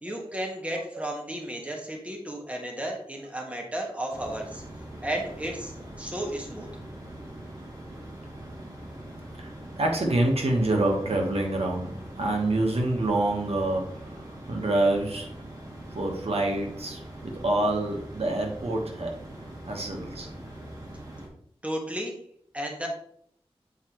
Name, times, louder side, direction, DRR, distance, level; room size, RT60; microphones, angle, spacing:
voice 1, 0.0-4.6 5.0-6.7 21.6-22.2 22.5-22.9, right 1 dB, 10° right, 0 dB, 1.5 m, -33 dB
sound 1, 4.1-21.3, right 1 dB, 35° right, 1.8 m, -42 dB
voice 2, 9.8-14.0 14.5-15.3 15.9-19.1 19.7-20.3, right 2 dB, 75° right, 1 dB, 1.2 m, -26 dB
8.3 x 4.4 x 3.0 m, 0.64 s
wide cardioid pair, 85°, 10 cm